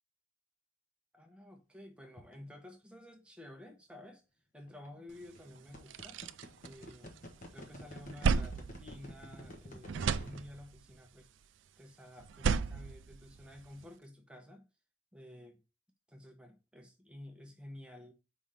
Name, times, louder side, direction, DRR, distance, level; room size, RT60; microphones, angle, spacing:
voice 1, 1.1-4.2 4.5-6.2 6.6-7.2 7.5-11.3 11.8-14.7 15.1-15.6 16.1-18.1, left 1 dB, 5° right, 0.9 m, -52 dB
sound 1, 2.2-2.3 4.7-4.9 5.3-10.5, equal, 40° left, 1.2 m, -49 dB
sound 2, 5.2-5.3 5.7-7.4 7.7-9.6 9.8-10.9 12.2-13.8, right 5 dB, 65° right, 0.4 m, -34 dB
5.0 x 3.5 x 5.7 m
head